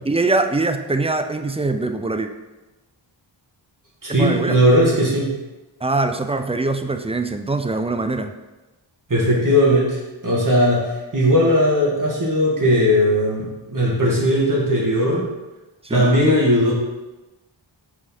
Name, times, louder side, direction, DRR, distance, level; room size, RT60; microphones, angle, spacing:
voice 1, 0.0-2.3 4.1-4.6 5.8-8.3 15.8-16.1, right 3 dB, 15° right, 8 dB, 0.4 m, -23 dB
voice 2, 4.0-5.3 9.1-10.8 11.1-15.2 15.9-16.7, equal, 40° right, -4 dB, 2.2 m, -18 dB
5.2 x 4.9 x 4.3 m, 1.1 s
cardioid pair, 55°, 47 cm